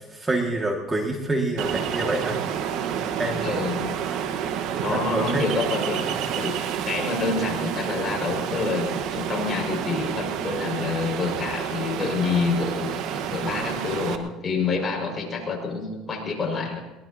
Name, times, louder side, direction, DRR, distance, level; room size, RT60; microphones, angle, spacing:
voice 1, 0.1-2.4 3.2-3.5 4.9-5.5, right 2 dB, 20° right, 1 dB, 2.1 m, -26 dB
Ocean, 1.6-14.2, right 8 dB, 70° right, 1.4 m, -29 dB
voice 2, 3.4-4.0 4.8-6.6 6.8-16.8, left 4 dB, 25° left, -1 dB, 5.7 m, -28 dB
22.5 x 19.0 x 2.9 m, 1.1 s
supercardioid pair, 100°, 0 cm